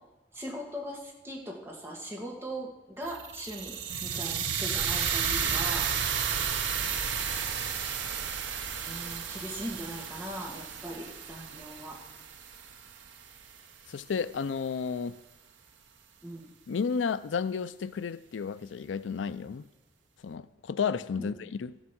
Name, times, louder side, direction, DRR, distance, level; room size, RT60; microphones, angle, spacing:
voice 1, 0.3-5.9 8.9-12.0 16.2-16.5 21.2-21.3, equal, 15° right, 2.0 m, -40 dB
sound 1, 3.1-13.2, right 7 dB, 80° right, 1.0 m, -32 dB
voice 2, 13.9-15.2 16.7-19.7 20.2-21.7, left 6 dB, 90° left, 0.4 m, -32 dB
14.0 x 8.0 x 6.0 m
head